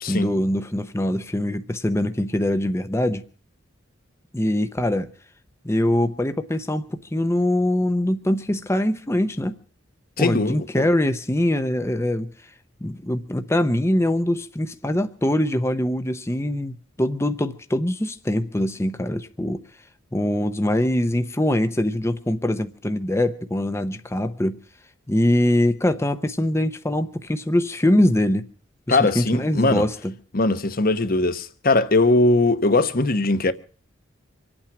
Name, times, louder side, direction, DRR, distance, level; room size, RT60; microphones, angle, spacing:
voice 1, 0.1-3.2 4.3-5.1 5.6-9.5 10.2-12.3 12.8-19.6 20.1-24.6 25.1-28.4 28.9-30.1, left 1 dB, 15° left, 0.7 m, -23 dB
voice 2, 10.2-10.9 28.9-29.9 30.3-33.5, left 2 dB, 45° left, 1.0 m, -20 dB
25.5 x 8.9 x 5.9 m
head